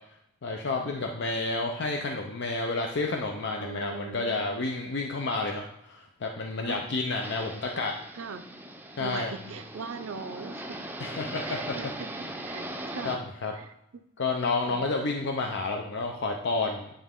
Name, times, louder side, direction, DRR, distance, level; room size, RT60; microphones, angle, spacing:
voice 1, 0.4-7.9 9.0-9.3 11.0-11.8 13.0-13.5 14.2-16.9, left 3 dB, 60° left, 2 dB, 0.6 m, -30 dB
voice 2, 3.6-4.6 6.7-6.9 8.1-8.5 9.0-10.6 11.4-12.1 12.4-13.3 13.5-14.0 14.6-14.9, right 5 dB, 80° right, 10 dB, 0.6 m, -40 dB
sound 1, 7.2-13.2, right 1 dB, 10° right, 0.5 m, -39 dB
9.3 x 3.4 x 3.7 m, 0.81 s
head